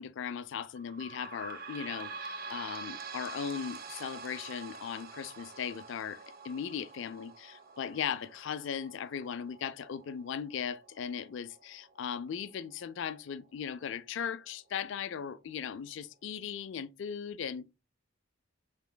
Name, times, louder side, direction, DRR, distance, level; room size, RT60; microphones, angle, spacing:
voice 1, 0.0-17.7, left 7 dB, 60° left, 0.3 m, -38 dB
sound 1, 0.8-13.9 14.5-14.6 14.9-15.0 15.8-15.9, right 4 dB, 45° right, 0.5 m, -47 dB
5.6 x 2.9 x 2.2 m
head